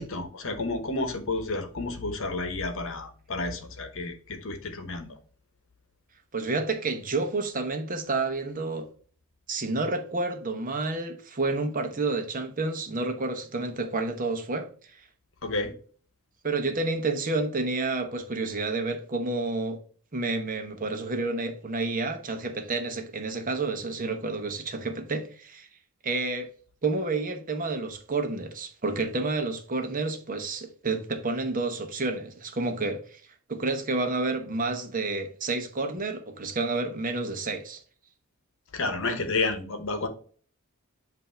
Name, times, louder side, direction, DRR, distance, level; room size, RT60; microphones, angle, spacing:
voice 1, 0.0-5.1 15.4-15.8 38.7-40.1, left 3 dB, 65° left, 1.0 m, -31 dB
voice 2, 6.3-8.9 9.5-15.0 16.4-19.8 20.1-25.7 26.0-26.5 26.8-33.2 33.5-37.8 39.1-39.2, right 3 dB, 40° right, 0.9 m, -30 dB
7.9 x 2.7 x 4.5 m
head